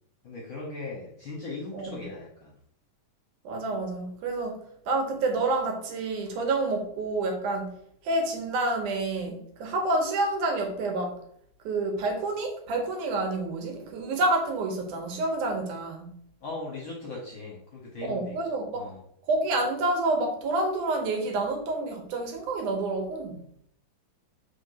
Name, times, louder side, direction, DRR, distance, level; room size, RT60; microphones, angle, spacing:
voice 1, 0.2-2.5 16.4-18.4 18.7-19.0, left 3 dB, 60° left, -3 dB, 1.4 m, -38 dB
voice 2, 3.4-4.6 4.9-7.7 8.0-11.2 11.6-16.2 18.0-18.9 19.3-23.4, right 2 dB, 75° right, 3 dB, 2.6 m, -28 dB
5.0 x 3.6 x 5.7 m, 0.68 s
omnidirectional pair, 3.6 m